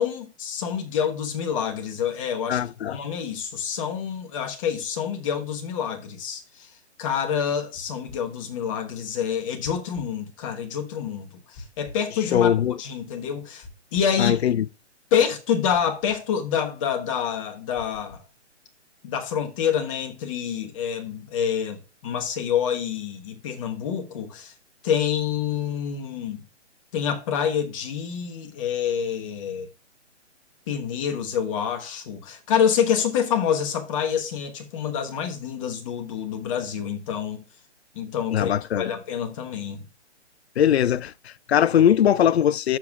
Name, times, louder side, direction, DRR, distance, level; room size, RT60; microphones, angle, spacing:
voice 1, 0.0-2.6 2.9-6.7 7.0-13.6 13.9-14.4 15.1-18.2 19.0-24.5 24.8-26.4 26.9-29.7 30.7-37.4 37.9-39.9, left 8 dB, 30° left, 1.2 m, -27 dB
voice 2, 2.5-3.0 12.3-12.8 14.2-14.6 38.3-38.9 40.6-42.8, left 10 dB, 60° left, 0.5 m, -21 dB
sound 1, 7.7-8.2 9.6-10.1 11.5-12.0 13.6-14.2 15.7-16.2 17.7-18.3, left 2 dB, 10° left, 0.4 m, -45 dB
11.5 x 7.1 x 2.4 m
figure-of-eight pair, 140°, 36 cm